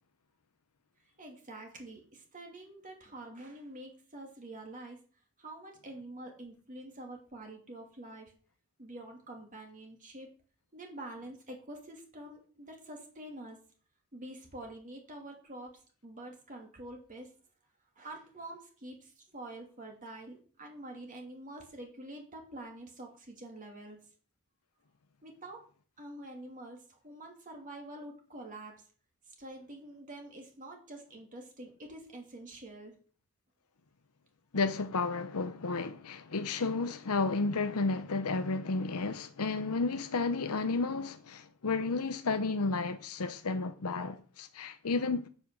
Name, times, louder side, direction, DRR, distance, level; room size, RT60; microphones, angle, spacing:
voice 1, 1.2-5.0 5.4-8.3 8.8-10.3 10.7-13.6 14.1-15.7 16.0-17.3 18.0-24.0 25.2-25.6 26.0-28.7 29.3-32.9, right 1 dB, 35° right, 2.8 m, -46 dB
voice 2, 34.5-45.3, left 3 dB, 85° left, 0.8 m, -32 dB
8.8 x 8.5 x 7.6 m
head